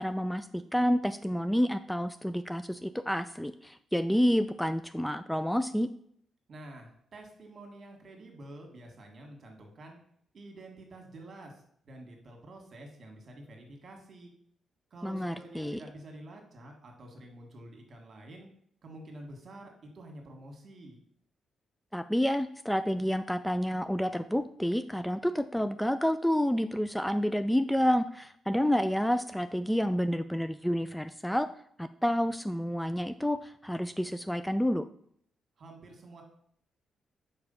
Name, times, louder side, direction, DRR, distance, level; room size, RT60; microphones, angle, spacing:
voice 1, 0.0-5.9 15.0-15.8 21.9-31.5 31.8-34.9, equal, 5° left, 11 dB, 0.4 m, -29 dB
voice 2, 6.5-10.0 10.3-14.3 14.9-18.5 18.8-21.0 35.6-36.2, right 1 dB, 55° right, 2 dB, 1.8 m, -48 dB
4.8 x 4.6 x 5.4 m, 0.66 s
hypercardioid pair, 45°, 0 cm